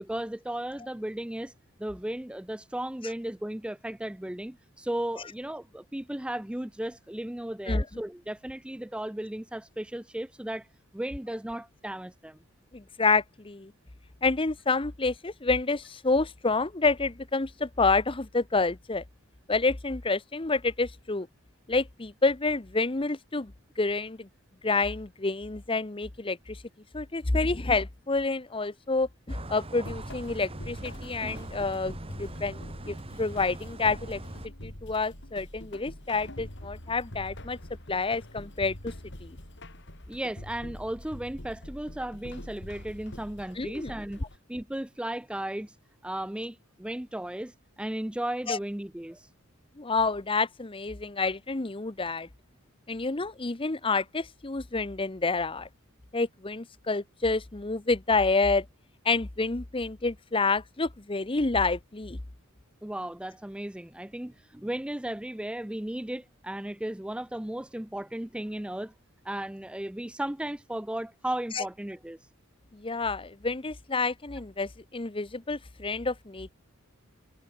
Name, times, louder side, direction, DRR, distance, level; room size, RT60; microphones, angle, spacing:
voice 1, 0.0-1.5 1.8-10.7 10.9-12.4 40.1-44.2 44.5-45.8 46.0-49.3 62.8-68.9 69.2-72.3, right 1 dB, 5° right, 0.4 m, -35 dB
voice 2, 7.7-8.0 12.7-13.7 14.2-19.0 19.5-21.3 21.7-24.3 24.6-26.6 26.9-34.2 34.6-37.6 37.9-38.9 39.2-39.4 43.6-43.9 48.5-48.6 49.8-52.3 52.9-55.7 56.1-58.7 59.0-62.2 71.5-71.6 72.7-76.5, left 3 dB, 25° left, 0.9 m, -28 dB
sound 1, 29.3-34.5, right 1 dB, 25° right, 1.5 m, -42 dB
sound 2, 29.8-44.4, left 1 dB, 55° left, 5.4 m, -44 dB
head